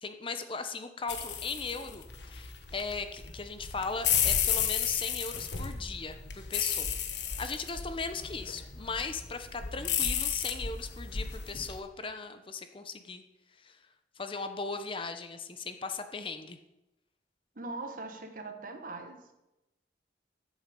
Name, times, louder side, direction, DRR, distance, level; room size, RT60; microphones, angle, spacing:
voice 1, 0.0-7.0 7.4-13.2 13.6-13.8 14.2-16.6, left 4 dB, 30° left, 0.7 m, -38 dB
sound 1, 1.1-11.8, left 8 dB, 85° left, 1.3 m, -33 dB
voice 2, 17.5-19.2, right 3 dB, 50° right, 1.3 m, -41 dB
13.5 x 7.4 x 5.3 m
head